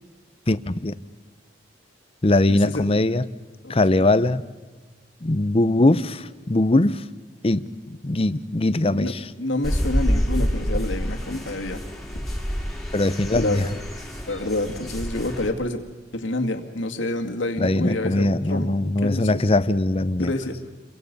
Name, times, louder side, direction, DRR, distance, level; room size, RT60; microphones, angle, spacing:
voice 1, 0.5-0.9 2.2-3.2 3.7-4.4 5.2-7.0 7.4-7.7 8.0-9.2 12.9-13.7 17.6-20.3, left 2 dB, 30° left, 14 dB, 0.7 m, -21 dB
voice 2, 2.5-2.8 3.6-4.0 8.9-9.1 9.4-11.8 13.3-13.6 14.3-15.8 16.1-19.3 20.2-20.6, left 2 dB, 80° left, 4 dB, 2.3 m, -28 dB
sound 1, 9.6-15.5, equal, ahead, 3.0 m, -27 dB
29.5 x 23.0 x 5.4 m, 1.3 s
head